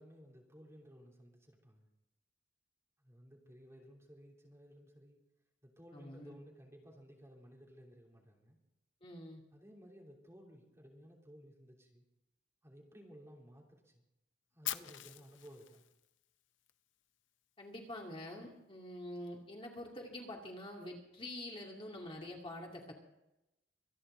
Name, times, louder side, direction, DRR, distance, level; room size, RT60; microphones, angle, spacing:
voice 1, 0.0-1.9 3.0-5.2 5.6-8.6 9.5-12.0 12.6-14.0 14.5-15.8, equal, 15° right, -2 dB, 3.2 m, -57 dB
voice 2, 5.9-6.4 9.0-9.4 17.6-22.9, left 1 dB, 30° left, 0 dB, 2.5 m, -46 dB
Fire, 14.6-16.7, left 13 dB, 75° left, 0.7 m, -43 dB
25.5 x 10.0 x 3.9 m, 0.89 s
head